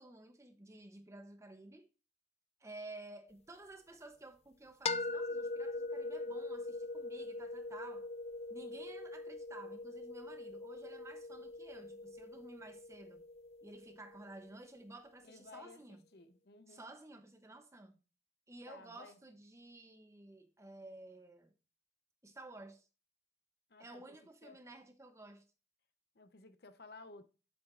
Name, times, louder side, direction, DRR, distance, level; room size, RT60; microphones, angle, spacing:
voice 1, 0.0-1.9 2.6-8.1 8.5-13.2 13.6-16.0 16.7-18.0 18.5-21.5 22.2-22.9 23.8-25.4, right 2 dB, 15° right, 0.8 m, -53 dB
sound 1, 4.8-14.7, left 3 dB, 35° left, 0.4 m, -42 dB
voice 2, 15.2-16.9 18.7-19.2 23.7-24.6 26.1-27.2, left 3 dB, 60° left, 0.8 m, -56 dB
10.0 x 7.5 x 2.5 m
head